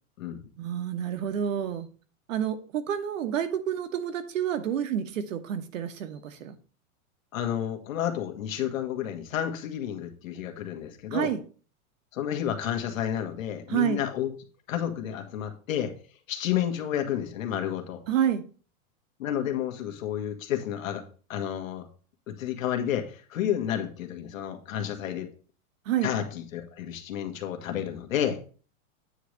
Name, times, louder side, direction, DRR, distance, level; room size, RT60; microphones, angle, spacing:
voice 1, 0.6-1.9 2.3-6.5 11.1-11.4 13.7-14.0 18.1-18.4 25.8-26.1, right 9 dB, 65° right, 1.2 m, -29 dB
voice 2, 7.3-11.3 12.1-14.3 14.7-15.9 16.3-18.0 19.2-21.0 21.3-21.9 22.3-25.3 26.0-28.4, left 10 dB, 70° left, 1.6 m, -31 dB
9.1 x 3.3 x 6.4 m
supercardioid pair, 175°, 42 cm